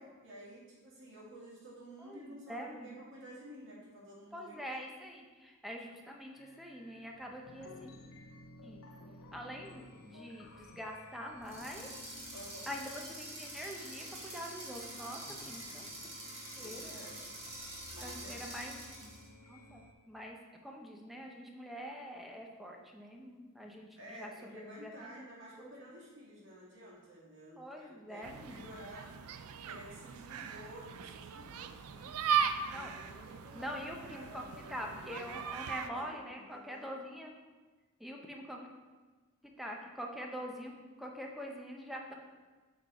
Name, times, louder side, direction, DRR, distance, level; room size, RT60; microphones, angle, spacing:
voice 1, 0.0-4.7 12.3-12.7 16.5-17.3 17.9-18.5 24.0-29.1 29.6-32.2 32.7-33.7 34.0-35.5 35.8-36.8, right 1 dB, 60° right, -6 dB, 2.2 m, -52 dB
voice 2, 2.0-2.9 4.3-7.9 8.6-8.8 9.3-11.9 12.7-15.9 16.6-17.0 18.0-18.7 19.4-25.1 25.6-25.9 27.6-28.7 32.7-32.9 33.5-37.3 38.0-38.6 39.4-40.7 41.0-42.2, equal, ahead, 0 dB, 0.7 m, -45 dB
sound 1, 6.4-19.9, left 2 dB, 65° left, 0.7 m, -55 dB
sound 2, 11.4-19.3, right 1 dB, 25° right, 1.6 m, -46 dB
sound 3, 28.2-35.9, right 7 dB, 90° right, 0.4 m, -38 dB
7.9 x 3.9 x 4.2 m, 1.3 s
head